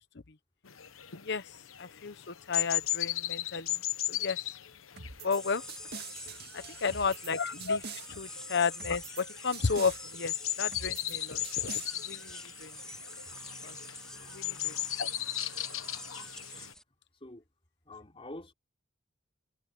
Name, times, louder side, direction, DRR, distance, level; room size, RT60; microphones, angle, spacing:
sound 1, 0.7-16.7, left 13 dB, 80° left, 1.0 m, -37 dB
voice 1, 1.8-3.8 4.1-4.4 5.2-5.6 6.5-12.7 13.6-13.7 14.3-15.1, left 5 dB, 55° left, 0.9 m, -33 dB
sound 2, 5.0-5.4 5.7-7.3 7.6-8.1 8.8-9.2 9.5-10.0 10.7-11.1 11.4-11.9, right 5 dB, 50° right, 1.9 m, -44 dB
sound 3, 5.3-16.8, left 1 dB, 5° left, 2.0 m, -46 dB
voice 2, 6.5-7.0 14.1-14.4 16.6-16.7 17.2-17.4 17.9-18.5, left 1 dB, 30° left, 3.7 m, -48 dB
head